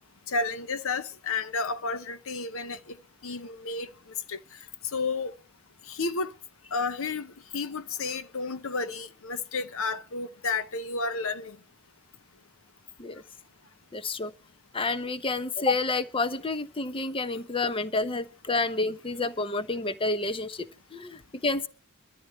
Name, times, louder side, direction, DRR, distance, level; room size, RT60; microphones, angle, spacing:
voice 1, 0.3-3.0 3.2-3.9 4.3-4.4 4.9-5.3 5.9-6.3 6.7-11.6, left 4 dB, 65° left, 0.9 m, -31 dB
voice 2, 13.9-14.3 14.7-21.7, left 3 dB, 25° left, 0.9 m, -29 dB
22.5 x 14.0 x 3.2 m
head